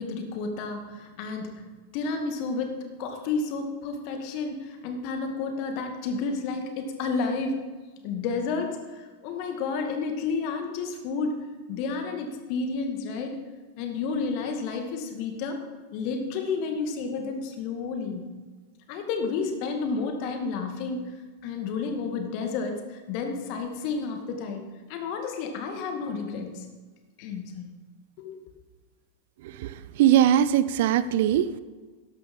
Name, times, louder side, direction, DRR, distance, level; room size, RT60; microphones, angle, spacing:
voice 1, 0.0-1.6 1.9-7.6 8.0-11.4 11.7-13.4 13.8-15.6 15.9-18.3 18.9-21.1 21.4-26.7 27.2-27.7 28.2-28.3, left 4 dB, 45° left, 5 dB, 2.1 m, -31 dB
voice 2, 30.0-31.6, right 11 dB, 50° right, 15 dB, 0.5 m, -20 dB
12.5 x 11.0 x 5.5 m, 1.4 s
figure-of-eight pair, 90°, 0 cm